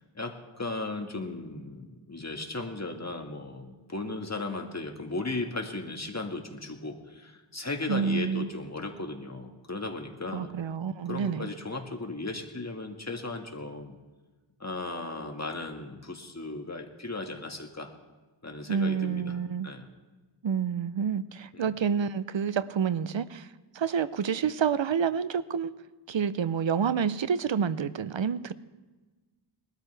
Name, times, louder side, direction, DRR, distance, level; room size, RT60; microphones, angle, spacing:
voice 1, 0.1-10.5 11.1-14.0 14.6-17.9 18.4-19.4 19.6-19.9 21.5-21.7, left 2 dB, 35° left, 3 dB, 1.9 m, -36 dB
voice 2, 7.9-8.5 10.3-11.5 18.7-19.7 20.4-23.5 23.7-25.7 26.1-28.5, right 7 dB, 65° right, 15 dB, 0.7 m, -28 dB
20.5 x 13.0 x 3.4 m, 1.3 s
wide cardioid pair, 50°, 49 cm